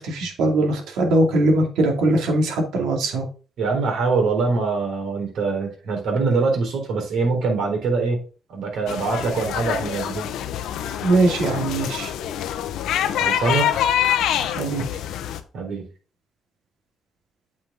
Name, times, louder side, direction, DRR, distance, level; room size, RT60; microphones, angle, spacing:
voice 1, 0.0-3.3 11.0-12.1 14.6-14.9, right 2 dB, 90° right, 2 dB, 2.4 m, -21 dB
voice 2, 3.6-8.2 8.5-10.3 13.2-13.7 15.5-15.9, right 4 dB, 75° right, 2 dB, 3.8 m, -23 dB
sound 1, 8.9-15.4, left 10 dB, 85° left, 0.9 m, -25 dB
8.6 x 5.4 x 3.7 m, 0.36 s
cardioid pair, 90°, 0 cm